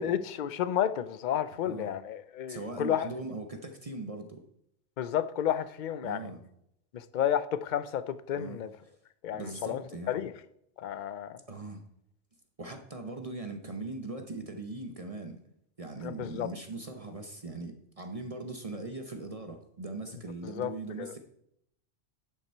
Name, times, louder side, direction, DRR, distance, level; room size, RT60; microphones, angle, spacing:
voice 1, 0.0-3.1 5.0-6.3 6.9-8.7 9.2-9.8 10.1-10.3 10.8-11.4 16.0-16.5 20.6-20.7 21.0-21.1, left 10 dB, 55° left, 0.6 m, -31 dB
voice 2, 2.5-4.4 6.0-6.4 8.4-8.6 9.3-10.1 11.5-11.8 12.6-15.4 15.8-21.2, right 2 dB, 35° right, 0.9 m, -40 dB
10.5 x 6.0 x 4.4 m
omnidirectional pair, 1.2 m